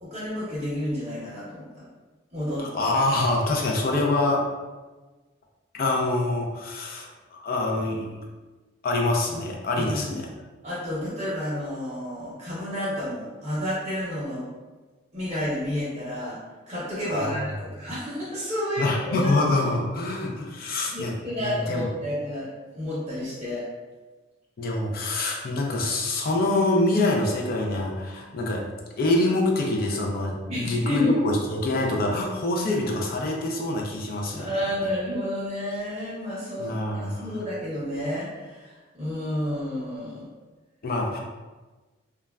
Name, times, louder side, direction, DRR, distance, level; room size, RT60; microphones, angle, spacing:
voice 1, 0.0-1.9 2.3-2.7 9.8-10.2 10.6-14.5 15.1-19.3 20.9-23.7 30.5-31.1 34.4-40.3, left 1 dB, 30° right, -8 dB, 0.7 m, -31 dB
voice 2, 2.6-4.5 5.7-8.2 8.8-10.3 17.1-17.3 18.8-21.1 21.4-21.8 24.6-28.7 29.0-34.5 36.6-37.3 40.8-41.2, left 2 dB, 50° left, 0 dB, 0.4 m, -25 dB
3.1 x 2.2 x 2.2 m, 1.3 s
head